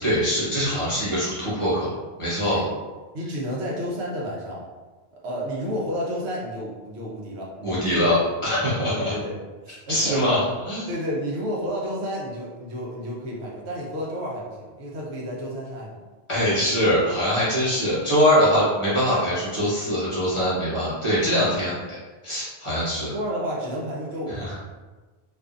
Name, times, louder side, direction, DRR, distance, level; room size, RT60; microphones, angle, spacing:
voice 1, 0.0-1.9 2.2-2.6 7.6-9.1 9.9-10.9 16.3-21.7 22.2-23.1 24.3-24.5, equal, 30° left, -9 dB, 0.9 m, -23 dB
voice 2, 3.1-4.6 5.1-9.4 9.6-10.2 10.9-16.0 23.1-24.6, equal, 80° right, -4 dB, 1.0 m, -31 dB
2.6 x 2.4 x 2.4 m, 1.3 s
omnidirectional pair, 1.1 m